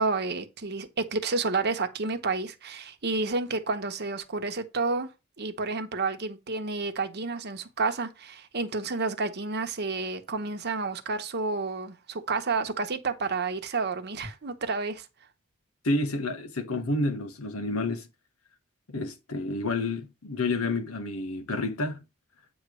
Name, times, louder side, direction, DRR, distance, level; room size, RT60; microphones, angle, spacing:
voice 1, 0.0-5.1 5.4-15.0, right 3 dB, 50° right, 1.1 m, -30 dB
voice 2, 15.8-18.1 18.9-22.0, left 2 dB, 85° left, 1.3 m, -29 dB
8.8 x 3.2 x 6.2 m
head